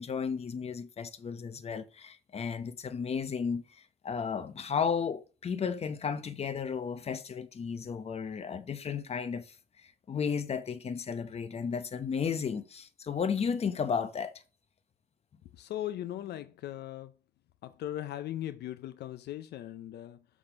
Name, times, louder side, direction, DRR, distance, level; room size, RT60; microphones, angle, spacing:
voice 1, 0.0-3.6 4.0-9.5 10.1-14.3, left 6 dB, 35° left, 0.8 m, -33 dB
voice 2, 15.5-17.1 17.6-20.2, left 12 dB, 70° left, 0.5 m, -39 dB
6.6 x 3.7 x 5.8 m
cardioid pair, 105°, 18 cm